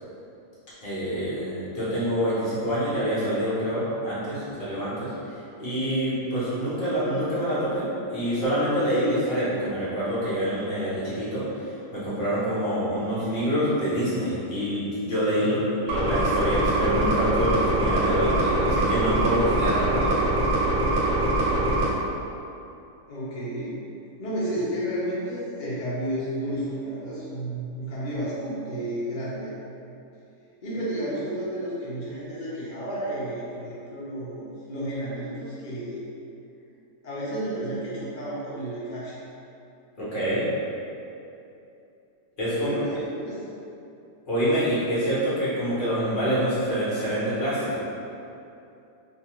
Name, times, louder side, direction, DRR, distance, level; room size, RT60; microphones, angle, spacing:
voice 1, 0.8-5.1 5.6-11.4 11.9-15.6 15.8-20.1 40.0-40.4 42.4-42.7 44.2-47.7, equal, 40° left, -11 dB, 0.8 m, -26 dB
voice 2, 15.4-15.9 23.1-23.8 24.2-29.5 30.6-36.0 37.0-39.2 42.5-43.4, right 1 dB, 80° left, -10 dB, 0.4 m, -32 dB
sound 1, 15.9-21.9, right 1 dB, 70° right, 0.7 m, -23 dB
2.7 x 2.5 x 2.9 m, 2.7 s
omnidirectional pair, 1.8 m